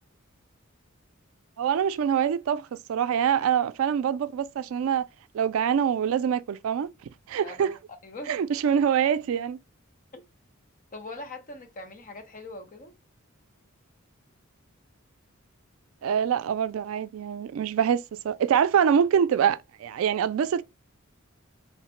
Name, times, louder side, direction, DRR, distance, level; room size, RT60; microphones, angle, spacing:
voice 1, 1.6-5.0 5.3-6.9 7.3-7.8 8.3-9.6 16.0-20.6, right 8 dB, 75° right, 0.3 m, -25 dB
voice 2, 7.4-8.3 10.1-10.2 10.9-12.9, left 2 dB, 40° left, 0.7 m, -42 dB
3.1 x 2.1 x 2.9 m
head